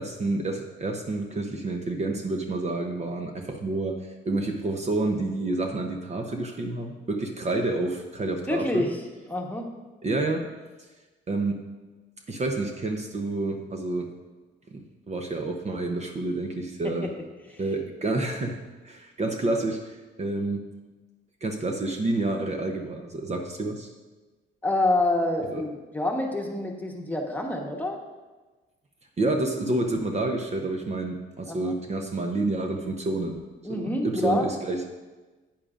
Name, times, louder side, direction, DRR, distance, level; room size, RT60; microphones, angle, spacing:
voice 1, 0.0-8.9 10.0-10.5 11.3-11.6 12.3-14.1 14.7-17.1 17.6-18.6 18.8-20.6 21.4-23.9 25.5-25.6 29.2-33.4 33.7-34.9, right 2 dB, 35° right, 4 dB, 0.8 m, -29 dB
voice 2, 8.5-9.0 9.3-9.7 16.8-17.1 24.6-28.0 31.5-31.7 33.6-34.5, left 2 dB, 10° left, 1 dB, 1.2 m, -27 dB
10.5 x 8.7 x 2.5 m, 1.2 s
cardioid pair, 90°, 20 cm